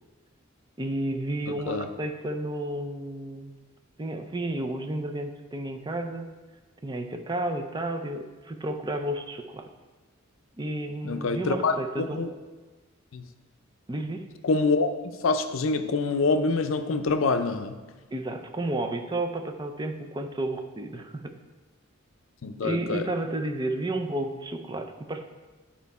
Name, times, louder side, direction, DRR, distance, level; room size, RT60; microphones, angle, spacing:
voice 1, 0.8-3.5 4.0-6.3 6.8-9.7 10.6-12.2 13.9-14.3 18.1-21.3 22.6-25.2, right 1 dB, 20° right, 5 dB, 0.5 m, -32 dB
voice 2, 11.0-12.3 13.1-13.3 14.4-14.9 15.2-17.8 22.4-23.1, left 3 dB, 70° left, 9 dB, 0.5 m, -26 dB
9.3 x 4.4 x 4.2 m, 1.3 s
head